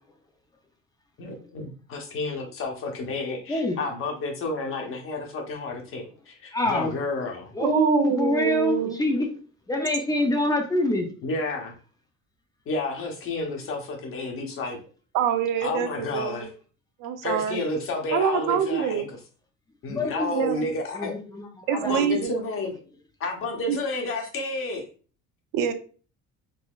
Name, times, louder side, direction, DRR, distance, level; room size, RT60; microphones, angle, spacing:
voice 1, 1.2-7.5 11.2-11.7 12.7-14.8 15.6-16.5 17.2-19.0 19.8-21.1 21.8-22.7 23.2-24.9, left 2 dB, 40° left, 0.9 m, -31 dB
voice 2, 3.5-3.8 6.5-6.9 7.5-9.3 9.7-11.1 19.9-20.3 20.9-22.2, left 1 dB, 10° left, 0.4 m, -26 dB
voice 3, 7.6-9.0 15.1-16.4 17.0-17.6 18.1-19.1 20.3-20.7 21.7-22.4 23.7-23.8 25.5-25.7, right 8 dB, 80° right, 0.6 m, -25 dB
4.0 x 2.8 x 2.3 m
cardioid pair, 150°, 32 cm